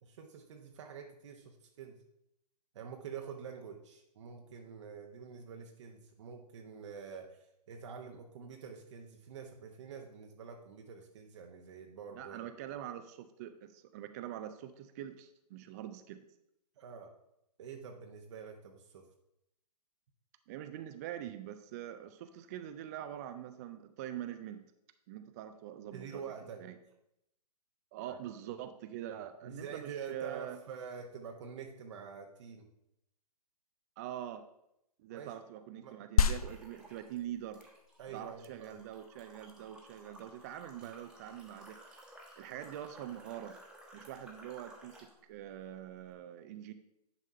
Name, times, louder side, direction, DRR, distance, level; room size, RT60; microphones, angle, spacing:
voice 1, 0.0-2.0 2.7-12.4 16.8-17.1 17.6-19.0 25.9-26.6 28.0-28.2 29.4-32.7 35.1-35.4 35.8-36.0 38.0-38.8, right 6 dB, 45° right, 3 dB, 1.0 m, -47 dB
voice 2, 12.1-16.2 20.5-24.6 25.1-26.2 26.6-26.8 27.9-30.6 34.0-34.4 35.0-37.6 38.1-41.8 42.4-43.6 43.9-46.7, right 11 dB, 25° right, 10 dB, 0.4 m, -44 dB
sound 1, 36.2-46.2, left 7 dB, 60° left, 0.5 m, -37 dB
sound 2, 36.2-37.2 37.5-45.1, right 1 dB, 5° right, 1.2 m, -56 dB
10.0 x 3.6 x 5.5 m, 0.80 s
hypercardioid pair, 135°, 21 cm